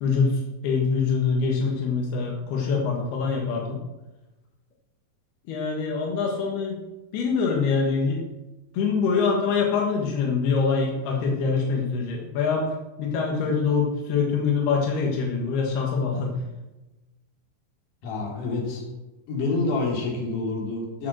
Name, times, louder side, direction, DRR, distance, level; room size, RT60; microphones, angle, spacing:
voice 1, 0.0-3.8 5.5-6.8 7.1-8.2 8.7-12.7 13.0-16.3, left 5 dB, 85° left, 0 dB, 3.5 m, -24 dB
voice 2, 18.0-18.8 19.3-21.1, left 3 dB, 60° left, -2 dB, 4.4 m, -27 dB
16.5 x 6.5 x 6.2 m, 1.1 s
omnidirectional pair, 4.4 m